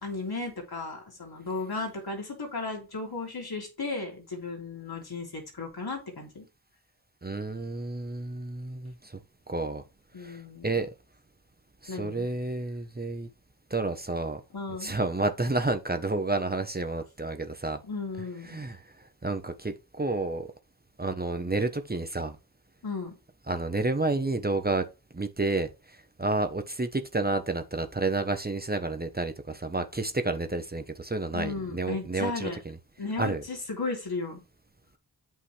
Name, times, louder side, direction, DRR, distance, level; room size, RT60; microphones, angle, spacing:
voice 1, 0.0-6.5 10.1-10.7 11.9-12.3 14.5-14.9 17.8-18.6 22.8-23.1 31.3-32.6 33.0-34.4, left 3 dB, 65° left, 3.0 m, -35 dB
voice 2, 7.2-9.2 9.5-9.8 10.2-10.9 11.8-13.3 13.7-14.4 14.8-17.8 18.5-18.8 19.2-20.5 21.0-22.4 23.5-24.9 25.1-25.7 26.2-32.5 33.2-33.4, right 2 dB, 25° right, 0.9 m, -30 dB
8.4 x 5.6 x 3.3 m
wide cardioid pair, 75°, 40 cm